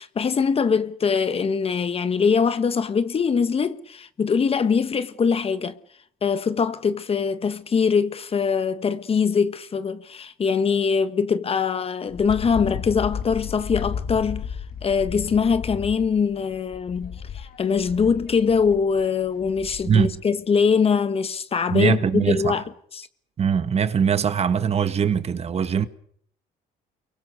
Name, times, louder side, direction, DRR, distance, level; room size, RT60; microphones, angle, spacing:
voice 1, 0.0-5.8 6.2-14.5 14.8-22.6 22.9-23.1, left 6 dB, 35° left, 1.4 m, -22 dB
Wind, 12.1-20.2, left 7 dB, 60° left, 3.2 m, -34 dB
voice 2, 21.7-22.6 23.4-25.9, right 7 dB, 40° right, 1.6 m, -21 dB
29.0 x 23.5 x 6.5 m
cardioid pair, 110°, 17 cm